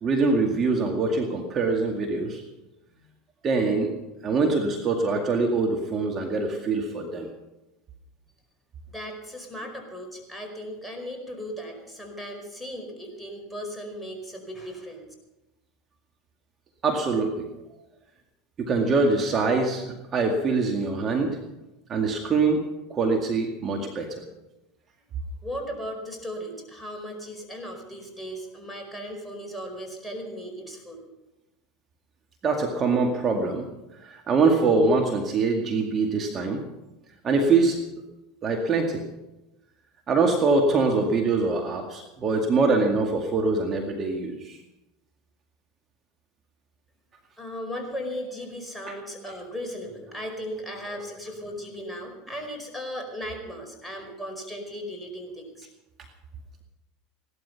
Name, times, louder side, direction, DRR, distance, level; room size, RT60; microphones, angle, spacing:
voice 1, 0.0-2.4 3.4-3.9 4.2-7.3 16.8-17.5 18.6-21.4 21.9-22.6 22.9-24.2 32.4-33.7 34.0-36.6 37.2-37.8 38.4-39.0 40.1-44.6 48.9-49.0, right 3 dB, 35° right, 2 dB, 2.1 m, -24 dB
voice 2, 8.9-15.1 25.4-31.0 47.4-55.7, equal, ahead, 1 dB, 4.9 m, -37 dB
17.0 x 12.5 x 5.8 m, 0.98 s
hypercardioid pair, 90°, 0 cm